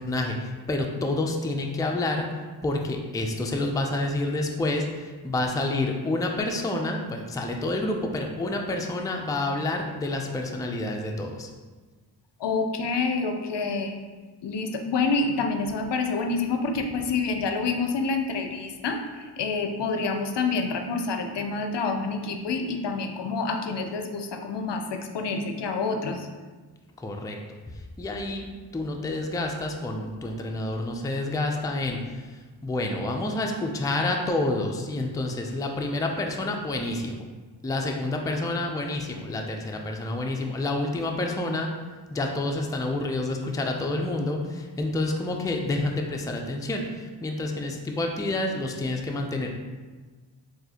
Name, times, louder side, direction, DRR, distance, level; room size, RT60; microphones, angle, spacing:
voice 1, 0.0-11.5 27.0-27.4 27.7-28.5 28.7-37.3 37.6-41.7 42.1-49.6, left 2 dB, 10° left, 2 dB, 0.4 m, -28 dB
voice 2, 12.4-14.0 14.4-26.3, left 4 dB, 70° left, 5 dB, 0.5 m, -28 dB
3.9 x 2.7 x 2.8 m, 1.3 s
cardioid pair, 50°, 44 cm